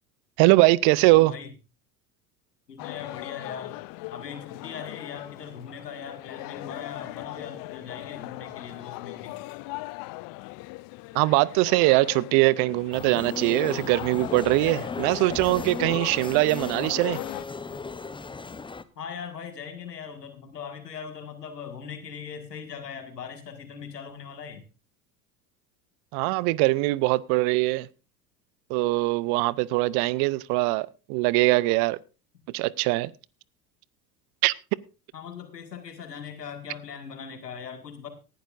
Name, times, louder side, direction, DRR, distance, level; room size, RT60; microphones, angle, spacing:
voice 1, 0.4-1.3 11.1-17.2 26.1-27.9 28.7-32.0 32.5-33.1 34.4-34.5, right 20 dB, 55° right, 0.7 m, -22 dB
voice 2, 1.1-1.5 2.7-3.8 4.1-9.4 19.0-24.6 35.1-38.1, left 7 dB, 90° left, 2.0 m, -40 dB
sound 1, 2.8-17.4, left 22 dB, 45° left, 0.5 m, -39 dB
sound 2, 12.9-18.8, left 4 dB, 10° left, 0.8 m, -36 dB
18.0 x 11.5 x 2.5 m
hypercardioid pair, 75°, 47 cm